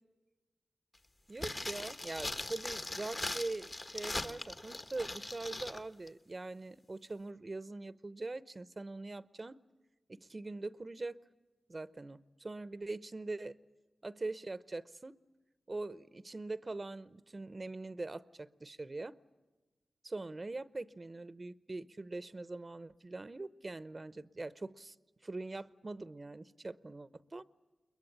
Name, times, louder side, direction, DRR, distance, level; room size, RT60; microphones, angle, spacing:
voice 1, 1.3-9.6 10.1-11.2 11.7-13.5 14.0-15.1 15.7-19.2 20.0-24.9 25.2-27.4, right 2 dB, 45° right, 16 dB, 0.8 m, -42 dB
sound 1, 1.4-5.8 6.1-6.2, left 2 dB, 45° left, 1.5 m, -40 dB
22.0 x 21.5 x 10.0 m, 1.2 s
cardioid pair, 40°, 0 cm